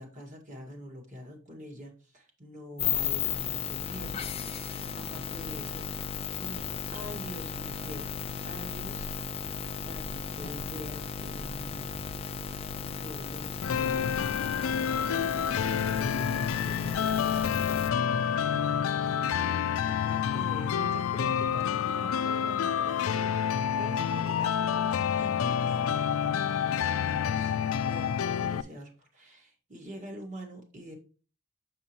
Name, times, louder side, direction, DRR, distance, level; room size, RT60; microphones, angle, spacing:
voice 1, 0.0-5.9 6.2-6.6 6.9-8.1 8.4-9.2 9.4-12.1 12.4-14.2 14.7-18.8 19.0-25.8 26.8-30.9, equal, 40° right, 1 dB, 1.9 m, -46 dB
sound 1, 2.8-17.9, left 7 dB, 30° left, 0.5 m, -35 dB
sound 2, 13.6-28.6, left 8 dB, 85° left, 0.4 m, -28 dB
7.1 x 6.2 x 2.9 m, 0.37 s
head